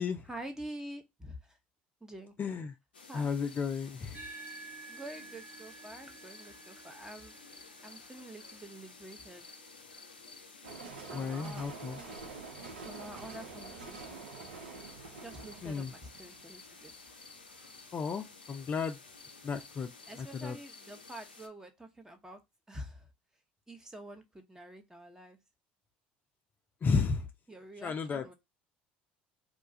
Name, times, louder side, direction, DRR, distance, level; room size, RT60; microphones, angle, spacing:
voice 1, 0.2-1.6 2.0-2.3 3.1-3.4 4.9-7.3 7.8-9.4 11.1-11.7 12.8-14.3 15.1-16.9 20.1-22.4 22.7-23.1 23.7-25.4 27.5-28.3, right 1 dB, 10° right, 0.8 m, -47 dB
voice 2, 2.4-2.7 3.1-4.2 11.1-12.0 15.6-15.9 17.9-19.0 19.4-19.9 20.2-20.6 26.8-27.3 27.8-28.3, left 5 dB, 35° left, 0.5 m, -33 dB
sound 1, 2.9-21.5, left 4 dB, 90° left, 0.5 m, -53 dB
sound 2, 4.1-12.9, right 4 dB, 40° right, 1.0 m, -53 dB
sound 3, 10.6-17.7, right 4 dB, 85° right, 0.6 m, -47 dB
2.4 x 2.3 x 4.0 m
hypercardioid pair, 65°, 5 cm